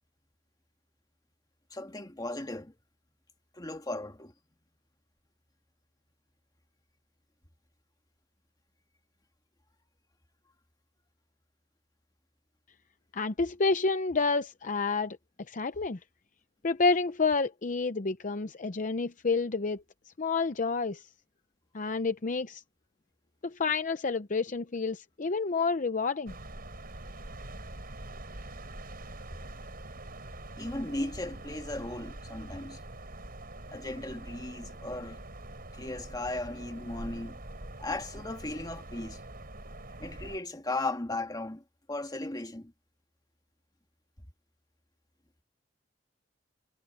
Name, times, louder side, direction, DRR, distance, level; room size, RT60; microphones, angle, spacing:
voice 1, 1.7-2.7 3.5-4.3 30.6-32.8 33.7-35.2 35.7-37.4 37.8-39.2 40.0-41.6 41.9-42.7, left 2 dB, 20° left, 1.7 m, -36 dB
voice 2, 13.1-15.2 15.5-16.0 16.6-19.8 20.2-21.1 21.7-22.6 23.4-26.3, left 4 dB, 45° left, 0.7 m, -29 dB
sound 1, 26.3-40.4, right 1 dB, 50° right, 5.2 m, -44 dB
head